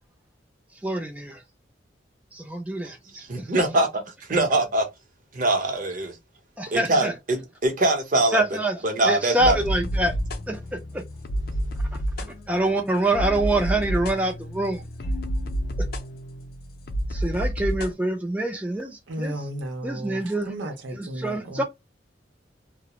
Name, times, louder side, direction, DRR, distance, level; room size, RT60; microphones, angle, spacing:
voice 1, 0.7-1.4 2.3-3.5 6.6-7.1 8.3-10.2 10.5-11.0 12.5-14.9 15.8-15.9 17.1-19.5 19.8-20.5 20.9-21.6, right 1 dB, 10° right, 0.3 m, -26 dB
voice 2, 3.3-3.9 4.3-4.9 5.3-6.2 6.7-8.4 8.8-9.6, right 2 dB, 45° right, 0.7 m, -23 dB
sound 1, 9.4-17.9, equal, 55° left, 0.5 m, -29 dB
voice 3, 19.1-21.6, right 1 dB, 85° right, 0.7 m, -34 dB
2.3 x 2.0 x 2.8 m
head